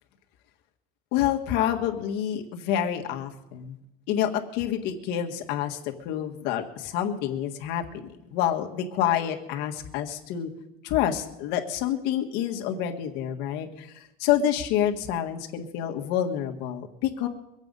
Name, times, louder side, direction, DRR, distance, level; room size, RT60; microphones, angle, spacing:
voice 1, 1.1-3.8 4.1-7.8 8.3-10.5 10.8-17.3, left 10 dB, 75° left, 4 dB, 1.6 m, -28 dB
23.5 x 8.2 x 5.4 m, 0.89 s
cardioid pair, 160°, 17 cm